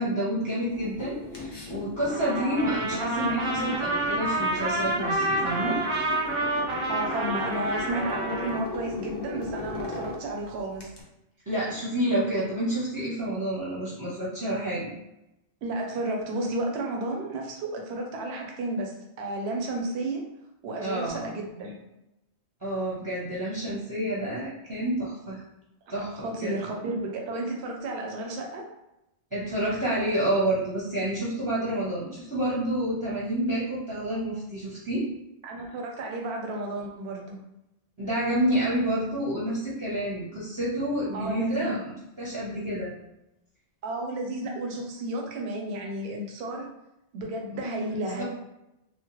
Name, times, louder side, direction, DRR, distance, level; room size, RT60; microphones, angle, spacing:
voice 1, 0.0-5.8 11.5-14.9 20.8-21.3 22.6-25.4 25.9-26.6 29.3-35.0 38.0-41.8 42.2-42.9 48.2-48.3, right 1 dB, 20° right, -8 dB, 0.6 m, -29 dB
sound 1, 0.7-11.0, left 2 dB, 30° left, 0.5 m, -38 dB
Trumpet, 2.1-8.6, right 2 dB, 55° right, 0.3 m, -29 dB
voice 2, 6.9-10.9 15.6-20.2 20.6-21.8 26.1-28.6 35.4-37.4 41.1-41.8 43.8-46.7 47.1-48.2, right 1 dB, 75° right, 1 dB, 0.8 m, -32 dB
2.9 x 2.1 x 3.0 m, 0.88 s
omnidirectional pair, 1.1 m